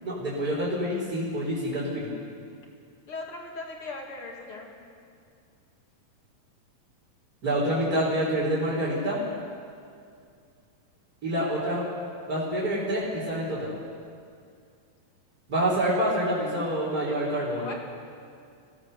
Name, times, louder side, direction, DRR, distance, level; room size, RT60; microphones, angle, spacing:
voice 1, 0.0-2.1 7.4-9.2 11.2-11.8 12.3-13.7 15.5-17.7, right 1 dB, 25° right, -8 dB, 4.3 m, -27 dB
voice 2, 3.1-4.7 17.6-17.7, left 3 dB, 40° left, 0 dB, 2.9 m, -38 dB
25.5 x 17.0 x 6.7 m, 2.4 s
omnidirectional pair, 4.0 m